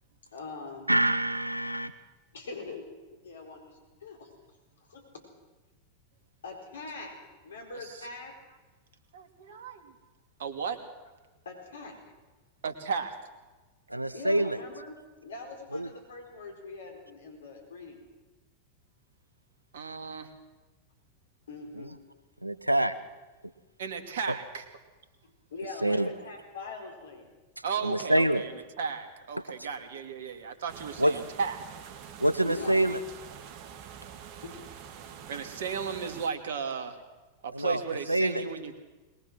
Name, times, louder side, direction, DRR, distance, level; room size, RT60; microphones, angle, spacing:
voice 1, 0.3-0.9 2.3-2.9 3.2-4.3 4.8-5.3 6.4-8.4 11.4-12.0 14.1-18.0 21.5-21.9 25.5-27.3 32.4-32.9 34.4-34.7, left 3 dB, 65° left, 3 dB, 4.3 m, -43 dB
voice 2, 0.9-1.9 13.9-14.6 15.7-15.9 21.7-21.9 22.4-22.9 25.8-26.1 27.8-28.4 31.0-31.2 32.2-33.0 37.5-37.8 38.1-38.4, right 1 dB, 85° right, 14 dB, 1.1 m, -26 dB
voice 3, 9.1-9.9 10.4-10.8 12.6-13.2 19.7-20.3 23.8-24.6 27.6-28.5 28.8-31.6 35.3-37.0 37.4-38.8, right 6 dB, 60° right, 7 dB, 2.4 m, -35 dB
sound 1, 30.7-36.3, right 8 dB, 45° right, 1.8 m, -46 dB
22.5 x 21.0 x 6.2 m, 1.2 s
figure-of-eight pair, 90°, 0 cm